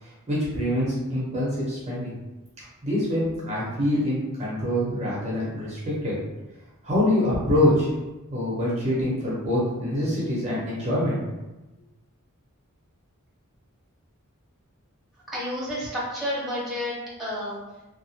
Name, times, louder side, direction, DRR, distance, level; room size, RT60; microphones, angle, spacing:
voice 1, 0.0-2.1 2.6-6.2 6.8-7.9 8.3-11.2, left 1 dB, 30° right, -7 dB, 0.7 m, -25 dB
voice 2, 15.3-16.9 17.2-17.6, left 1 dB, ahead, -8 dB, 1.0 m, -30 dB
2.8 x 2.3 x 2.8 m, 1.1 s
head